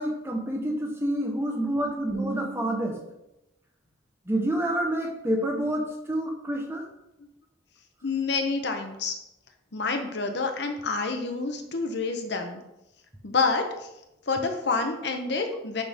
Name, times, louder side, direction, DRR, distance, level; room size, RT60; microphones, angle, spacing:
voice 1, 0.0-3.1 4.3-6.9, right 1 dB, 10° right, 2 dB, 0.9 m, -28 dB
voice 2, 8.0-9.1 9.7-12.6 13.2-13.6 14.3-15.8, left 4 dB, 60° left, 5 dB, 0.9 m, -28 dB
10.5 x 4.2 x 3.6 m, 0.89 s
head